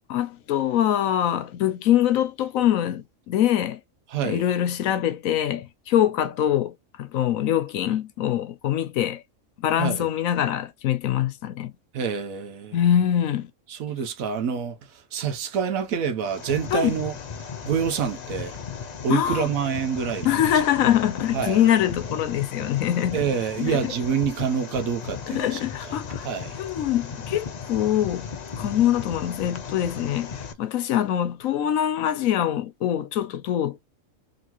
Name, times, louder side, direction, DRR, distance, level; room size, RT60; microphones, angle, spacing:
voice 1, 0.1-3.8 4.2-6.7 7.0-9.2 9.6-11.7 12.7-13.5 16.7-17.0 19.1-19.5 20.2-23.2 23.6-23.9 25.3-26.3 26.6-28.2 28.6-33.9, left 11 dB, 80° left, 1.1 m, -24 dB
voice 2, 4.1-4.4 9.8-10.1 11.9-12.8 13.7-14.8 15.1-17.1 17.6-18.6 19.0-20.4 21.3-21.6 23.1-25.6 25.9-26.0 26.2-26.6, right 7 dB, 80° right, 1.2 m, -27 dB
sound 1, 16.2-30.5, left 6 dB, 55° left, 0.5 m, -36 dB
3.9 x 2.9 x 2.9 m
omnidirectional pair, 1.4 m